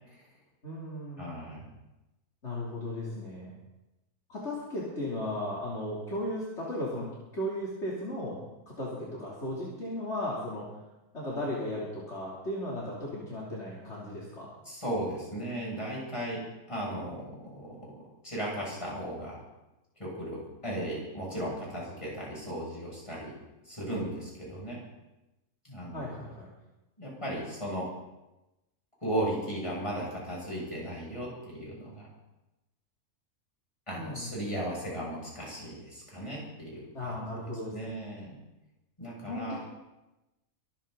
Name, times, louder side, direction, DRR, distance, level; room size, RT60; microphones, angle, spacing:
voice 1, 0.6-1.3 2.4-3.5 4.3-7.1 7.3-8.4 8.7-10.7 11.1-14.5 25.9-26.5 33.9-34.3 36.9-37.9 39.3-39.6, left 1 dB, 45° left, -6 dB, 3.7 m, -36 dB
voice 2, 1.2-1.7 14.6-17.9 18.2-19.4 20.0-23.4 23.6-24.8 25.6-26.1 27.0-27.9 29.0-32.1 33.9-37.3 37.7-38.4 39.0-39.6, right 1 dB, 20° left, -5 dB, 7.5 m, -36 dB
24.5 x 14.5 x 4.1 m, 0.99 s
omnidirectional pair, 1.6 m